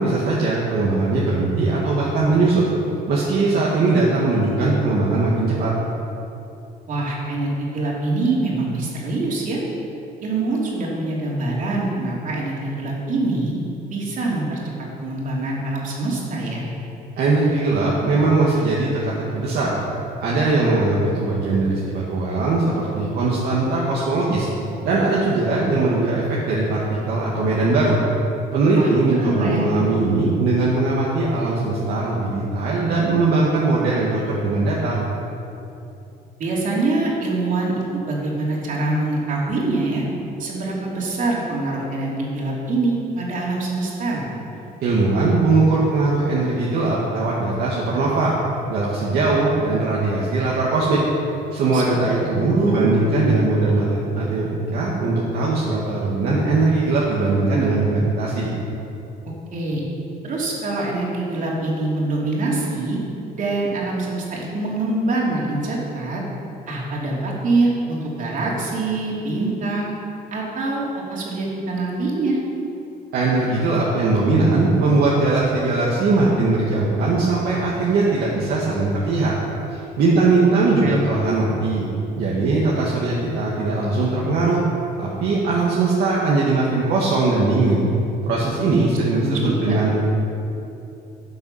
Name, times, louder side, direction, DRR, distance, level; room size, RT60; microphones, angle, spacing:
voice 1, 0.0-2.6 3.1-5.7 17.2-19.8 20.2-24.5 24.8-28.0 28.5-35.0 44.8-48.3 48.7-51.0 51.5-58.5 73.1-79.3 79.7-81.9 82.2-84.6 85.0-87.8 88.3-89.9, right 3 dB, 65° right, -5 dB, 1.8 m, -20 dB
voice 2, 6.9-9.6 10.2-13.5 13.9-16.6 28.7-28.9 29.2-29.7 36.4-40.0 40.4-44.3 51.7-52.0 52.4-53.0 59.3-59.8 60.2-63.0 63.4-66.2 66.7-69.9 70.3-72.4 80.1-80.2 80.6-81.0 89.2-89.7, right 2 dB, 50° right, -3 dB, 3.1 m, -24 dB
13.0 x 7.1 x 5.7 m, 2.8 s
cardioid pair, 110°, 17 cm